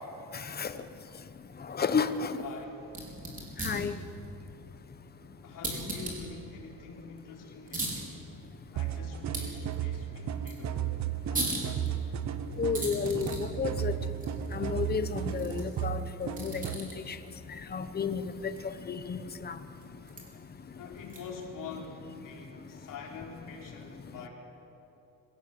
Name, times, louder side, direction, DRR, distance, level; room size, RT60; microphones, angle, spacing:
voice 1, 1.8-2.4 3.6-3.9 12.6-13.9 14.5-16.9 17.7-18.2 18.9-19.2 19.4-19.5, left 5 dB, 25° left, 11 dB, 1.1 m, -31 dB
voice 2, 2.4-2.9 5.4-8.4 8.7-11.7 20.7-24.3, left 5 dB, 60° left, -1 dB, 4.2 m, -45 dB
sound 1, 2.8-21.5, right 2 dB, 20° right, 4.8 m, -41 dB
sound 2, 8.8-16.8, right 9 dB, 50° right, 1.0 m, -34 dB
25.0 x 17.0 x 8.0 m, 2.9 s
cardioid pair, 150°, 36 cm